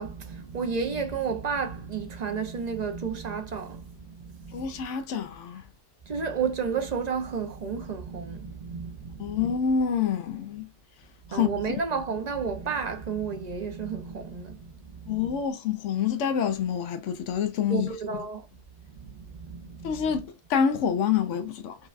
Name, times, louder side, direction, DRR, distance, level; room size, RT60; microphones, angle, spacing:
voice 1, 0.0-4.9 6.1-9.6 11.3-15.4 17.7-18.4 19.0-20.2, right 5 dB, 45° right, 0.7 m, -32 dB
voice 2, 4.5-5.6 9.2-10.7 11.3-11.5 15.1-17.9 19.8-21.8, left 7 dB, 85° left, 0.9 m, -27 dB
5.3 x 2.2 x 2.4 m
omnidirectional pair, 1.2 m